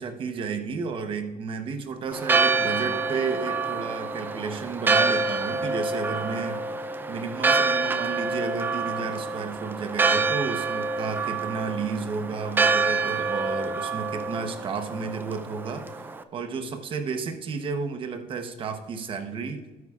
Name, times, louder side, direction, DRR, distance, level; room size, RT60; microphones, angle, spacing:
voice 1, 0.0-6.6 7.1-19.6, right 5 dB, 40° right, 7 dB, 0.9 m, -32 dB
Church bell, 2.1-16.2, right 3 dB, 15° right, 0.4 m, -27 dB
13.0 x 9.5 x 2.4 m, 1.1 s
cardioid pair, 160°, 14 cm